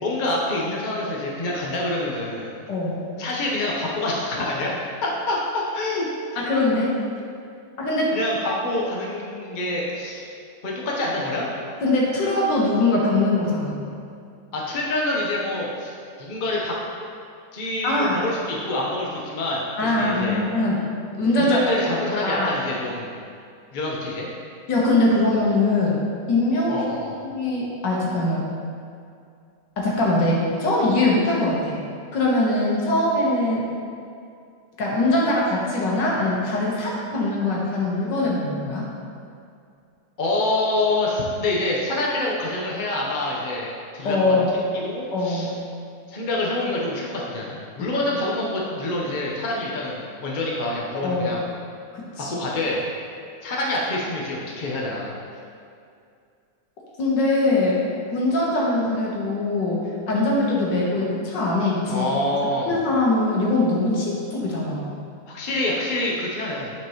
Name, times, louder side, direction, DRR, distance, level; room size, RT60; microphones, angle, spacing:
voice 1, 0.0-2.5 3.2-4.7 5.0-6.1 6.3-6.4 8.1-10.2 10.6-11.5 14.5-16.7 17.5-20.4 21.4-23.2 23.7-24.3 26.7-27.2 40.2-45.5 46.1-51.5 52.2-52.8 53.4-55.1 61.9-62.8 65.3-66.7, left 2 dB, 35° left, -4 dB, 0.9 m, -26 dB
voice 2, 2.7-3.0 6.4-6.9 7.8-8.1 11.8-13.8 17.8-18.2 19.8-20.8 21.2-21.7 22.2-22.5 24.7-26.0 26.3-26.9 27.3-28.5 29.8-31.8 32.1-33.6 34.8-38.9 44.0-44.5 45.1-45.5 47.8-47.9 50.9-51.3 52.2-52.3 57.0-57.8 58.1-62.1 62.7-64.9, left 2 dB, 80° left, -4 dB, 1.9 m, -22 dB
9.2 x 5.2 x 3.0 m, 2.4 s
omnidirectional pair, 1.9 m